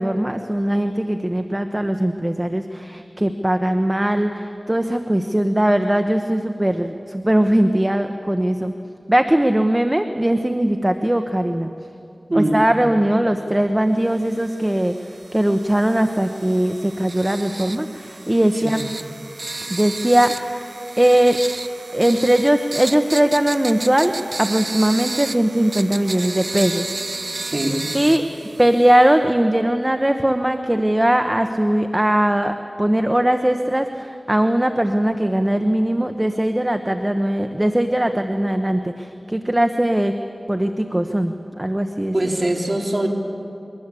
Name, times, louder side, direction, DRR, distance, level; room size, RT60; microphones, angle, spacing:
voice 1, 0.0-8.7 9.1-11.7 12.3-14.9 15.3-18.8 19.7-20.7 21.0-21.4 21.9-26.9 27.2-27.4 27.9-28.2 28.6-40.2 40.5-42.1, right 1 dB, 20° right, 7 dB, 1.0 m, -20 dB
voice 2, 12.3-12.6 18.6-18.8 27.4-27.9 42.1-43.1, right 1 dB, 45° right, 0 dB, 3.4 m, -22 dB
sound 1, 14.2-29.1, right 3 dB, 65° right, 0.5 m, -33 dB
23.0 x 19.5 x 8.4 m, 2.7 s
wide cardioid pair, 45°, 0 cm